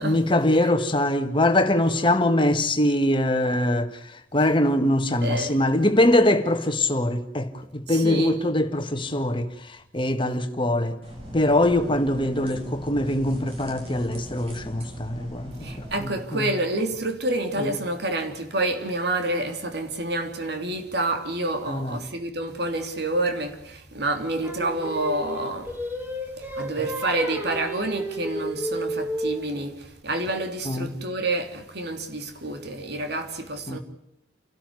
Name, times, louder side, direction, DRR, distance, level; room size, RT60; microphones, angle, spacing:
voice 1, 0.0-11.0 11.3-15.7 16.0-16.5 17.6-17.7 21.7-22.0 30.6-30.9 33.7-33.8, left 1 dB, 25° left, 1.7 m, -23 dB
voice 2, 5.2-5.6 7.9-8.4 15.6-33.8, right 2 dB, 60° right, 3.2 m, -28 dB
sound 1, 11.0-16.0, equal, 30° right, 6.7 m, -39 dB
Singing, 24.4-29.6, equal, 10° right, 3.9 m, -32 dB
29.5 x 12.5 x 9.6 m
head